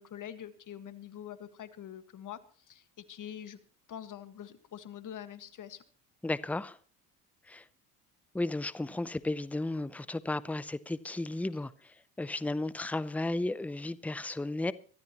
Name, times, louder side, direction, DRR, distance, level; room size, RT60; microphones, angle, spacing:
voice 1, 0.0-3.6 3.9-5.8, left 10 dB, 50° left, 1.7 m, -45 dB
voice 2, 6.2-6.8 7.5-7.6 8.3-14.7, left 2 dB, 5° left, 0.6 m, -34 dB
24.5 x 13.0 x 3.0 m
supercardioid pair, 85°, 39 cm